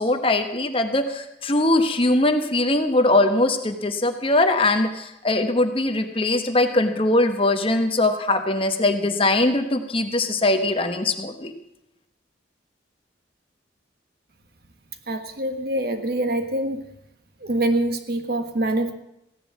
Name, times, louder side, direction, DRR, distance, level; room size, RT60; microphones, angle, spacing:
voice 1, 0.0-11.5, left 2 dB, 30° left, 7 dB, 1.1 m, -21 dB
voice 2, 15.1-16.9 17.4-18.9, right 1 dB, 50° right, 7 dB, 1.4 m, -25 dB
15.5 x 11.0 x 7.3 m, 0.82 s
head